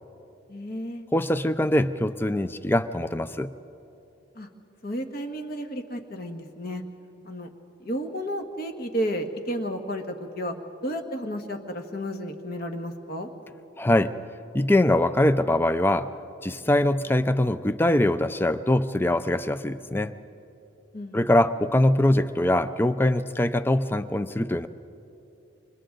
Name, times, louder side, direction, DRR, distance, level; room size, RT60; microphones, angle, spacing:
voice 1, 0.5-1.0 4.3-4.5 4.8-6.8 7.2-7.5 7.8-10.5 10.8-13.3 20.9-21.3, equal, 50° left, 5 dB, 1.5 m, -32 dB
voice 2, 1.1-3.5 13.8-14.1 14.5-16.1 16.4-20.1 21.1-24.7, left 1 dB, 10° left, 13 dB, 0.4 m, -23 dB
28.5 x 25.5 x 3.9 m, 2.9 s
head